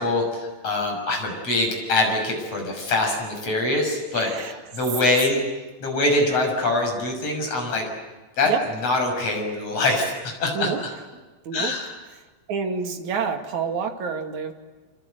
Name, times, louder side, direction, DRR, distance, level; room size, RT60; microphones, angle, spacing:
voice 1, 0.0-5.4 5.8-7.9 8.4-8.5 8.8-10.9 11.5-11.9, left 2 dB, 35° left, 2 dB, 7.3 m, -24 dB
voice 2, 4.1-4.6 8.4-8.6 10.5-10.8 11.4-11.7 12.1-12.2 12.5-14.5, right 6 dB, 50° right, 5 dB, 3.1 m, -28 dB
27.0 x 26.0 x 8.0 m, 1.2 s
omnidirectional pair, 5.2 m